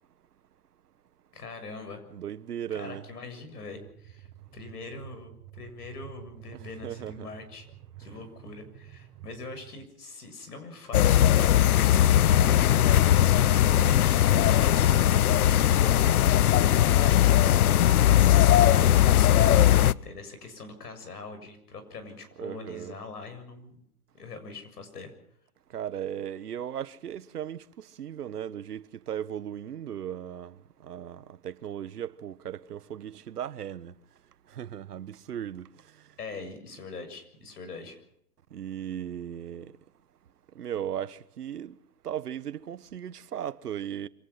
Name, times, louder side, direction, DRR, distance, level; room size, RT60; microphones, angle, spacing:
voice 1, 1.3-2.1 2.7-7.7 8.0-15.1 15.7-23.8 24.1-25.1 36.2-38.0, left 3 dB, 90° left, 7.2 m, -43 dB
voice 2, 2.1-3.0 6.8-7.3 22.4-23.0 25.7-27.6 28.0-30.5 30.8-33.9 34.6-35.7 38.5-39.7 40.6-41.7 42.0-44.1, right 10 dB, 85° right, 1.3 m, -36 dB
sound 1, 3.7-9.8, right 12 dB, 35° right, 4.8 m, -49 dB
sound 2, 10.9-19.9, left 11 dB, 70° left, 0.8 m, -20 dB
26.0 x 18.0 x 5.8 m
hypercardioid pair, 160°, 45 cm